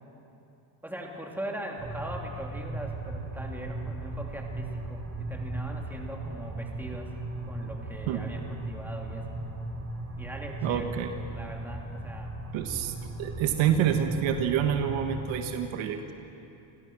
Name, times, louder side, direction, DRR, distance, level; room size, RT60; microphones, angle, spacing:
voice 1, 0.8-7.1 7.4-9.4 10.2-10.9 11.3-12.3 13.4-13.5, right 1 dB, 5° right, 0 dB, 3.0 m, -40 dB
sound 1, 1.8-15.4, right 2 dB, 30° right, 4.3 m, -37 dB
voice 2, 10.6-11.1 12.5-16.1, right 9 dB, 70° right, 6 dB, 1.6 m, -27 dB
27.5 x 16.0 x 6.2 m, 2.9 s
supercardioid pair, 105°, 48 cm